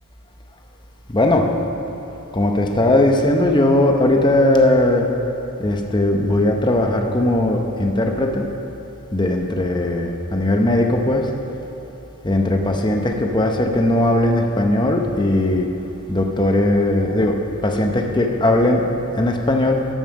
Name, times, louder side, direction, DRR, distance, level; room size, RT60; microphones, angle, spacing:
voice 1, 1.1-1.6 2.3-5.1 5.6-8.6 9.1-11.3 12.2-15.7 16.1-19.9, left 1 dB, 20° left, 3 dB, 0.7 m, -18 dB
12.5 x 5.5 x 6.2 m, 2.9 s
head